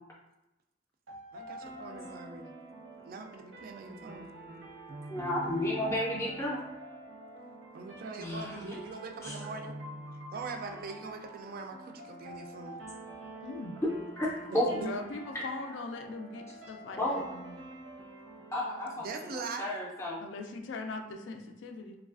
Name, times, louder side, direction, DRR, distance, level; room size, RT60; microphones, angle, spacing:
sound 1, 1.1-20.0, right 1 dB, 90° right, 0.7 m, -46 dB
voice 1, 1.3-2.5 3.0-4.3 7.7-9.8 10.3-12.8 14.5-14.9 19.0-19.6, right 3 dB, 50° right, 5 dB, 0.3 m, -42 dB
voice 2, 5.1-6.6 8.2-8.8 9.2-9.4 14.2-14.8 17.0-17.3 18.5-20.2, left 1 dB, 15° left, -5 dB, 0.4 m, -32 dB
voice 3, 13.4-13.8 14.7-17.6 20.2-22.0, left 3 dB, 80° left, 4 dB, 0.4 m, -41 dB
3.1 x 2.3 x 2.4 m, 0.96 s
head